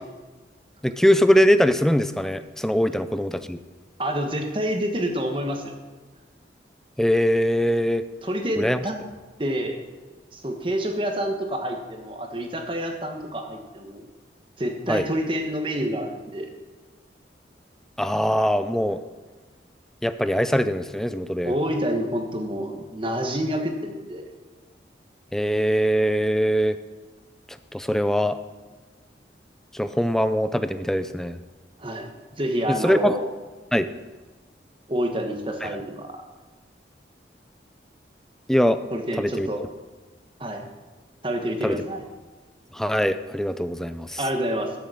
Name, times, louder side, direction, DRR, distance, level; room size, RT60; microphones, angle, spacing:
voice 1, 0.8-3.6 7.0-8.1 8.6-8.8 14.9-15.1 18.0-19.0 20.0-21.5 25.3-26.8 27.5-28.4 29.7-31.4 32.7-33.2 33.7-33.9 35.6-35.8 38.5-38.8 39.2-39.5 41.6-41.8 42.7-44.2, equal, 5° left, 11 dB, 0.4 m, -22 dB
voice 2, 4.0-5.8 8.2-8.9 9.4-9.8 10.3-14.1 14.6-16.5 21.4-24.2 31.8-33.2 34.9-36.2 38.9-39.6 40.4-40.7 41.2-42.0 44.2-44.7, equal, 30° right, 4 dB, 1.3 m, -28 dB
13.0 x 7.0 x 6.3 m, 1.3 s
head